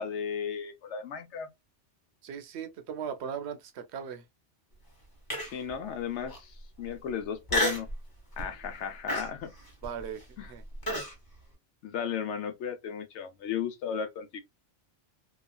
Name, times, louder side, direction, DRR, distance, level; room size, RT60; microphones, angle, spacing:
voice 1, 0.0-1.5 5.5-7.9 8.4-9.5 10.4-10.5 11.8-14.4, left 7 dB, 80° left, 1.0 m, -35 dB
voice 2, 2.2-4.3 9.8-10.6, right 7 dB, 75° right, 0.8 m, -38 dB
Human voice, 5.3-5.7 6.3-6.4 7.5-7.9 8.4-8.7 9.1-11.1, left 1 dB, 20° left, 1.0 m, -30 dB
2.9 x 2.4 x 2.3 m
omnidirectional pair, 1.2 m